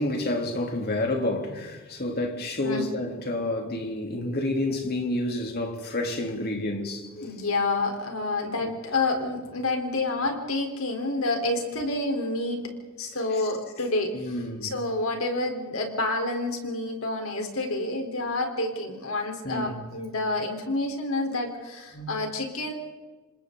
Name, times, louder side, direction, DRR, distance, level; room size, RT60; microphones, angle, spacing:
voice 1, 0.0-7.4 8.5-8.7 13.3-13.4 14.1-14.7 19.4-19.9 21.9-22.2, left 1 dB, 50° left, 3.4 m, -29 dB
voice 2, 7.2-12.7 13.0-14.1 14.6-22.7, left 2 dB, 75° left, 4.2 m, -28 dB
28.5 x 26.0 x 4.0 m
head